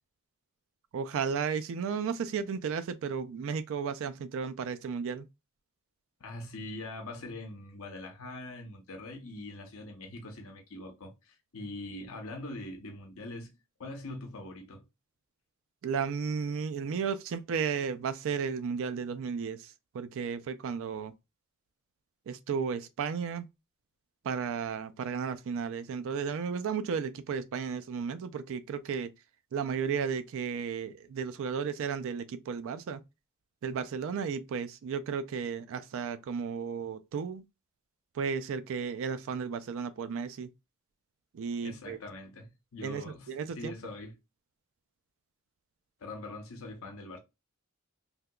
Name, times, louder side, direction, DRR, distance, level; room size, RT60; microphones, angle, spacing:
voice 1, 0.9-5.3 15.8-21.1 22.3-23.5 24.2-29.1 29.5-33.0 33.6-37.4 38.1-40.5 41.3-42.0 42.8-43.7, right 6 dB, 65° right, 0.3 m, -34 dB
voice 2, 6.2-13.5 13.8-14.8 41.6-44.2 46.0-47.2, left 2 dB, 70° left, 0.8 m, -43 dB
3.5 x 2.8 x 2.2 m
head